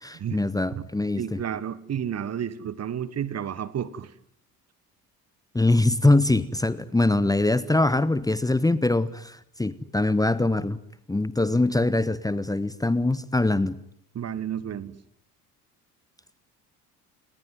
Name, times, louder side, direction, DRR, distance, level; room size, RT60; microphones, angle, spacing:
voice 1, 0.0-1.4 5.5-10.8 11.1-13.8, left 2 dB, 10° left, 1.1 m, -23 dB
voice 2, 1.2-4.1 14.1-15.0, right 9 dB, 35° right, 1.4 m, -31 dB
30.0 x 20.0 x 9.5 m
figure-of-eight pair, 55°, 46 cm